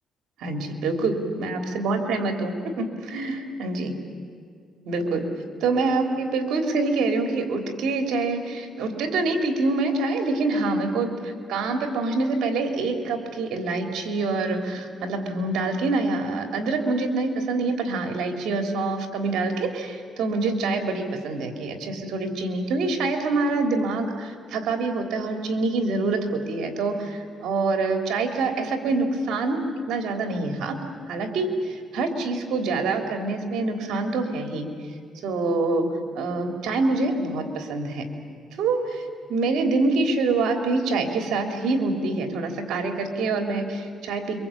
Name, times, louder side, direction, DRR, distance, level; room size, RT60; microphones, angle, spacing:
voice 1, 0.4-4.0 4.9-5.3 5.6-30.8 31.1-34.7 35.2-38.1 38.6-39.0 39.3-44.4, right 3 dB, 80° right, 5 dB, 3.5 m, -26 dB
26.5 x 24.5 x 8.9 m, 2.1 s
cardioid pair, 90°, 0 cm